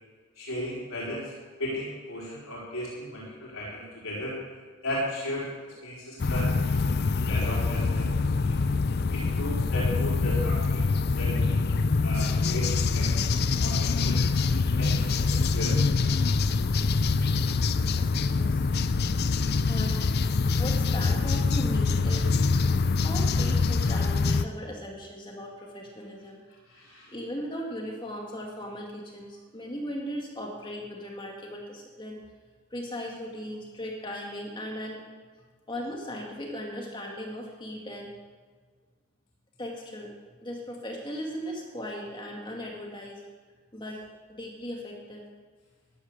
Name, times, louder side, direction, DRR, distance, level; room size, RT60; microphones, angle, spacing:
voice 1, 0.4-1.3 1.6-4.4 4.8-8.6 9.1-10.9 11.2-15.8 26.7-27.1, equal, 75° left, -6 dB, 4.5 m, -36 dB
sound 1, 6.2-24.5, left 4 dB, 50° left, 0.5 m, -25 dB
voice 2, 18.0-18.6 19.7-20.3 20.6-22.5 23.0-26.4 27.1-32.2 32.7-35.0 35.7-38.1 39.6-40.1 40.4-43.2 43.7-44.0 44.3-45.2, equal, 20° left, -1 dB, 2.2 m, -37 dB
13.5 x 12.0 x 6.7 m, 1.5 s
head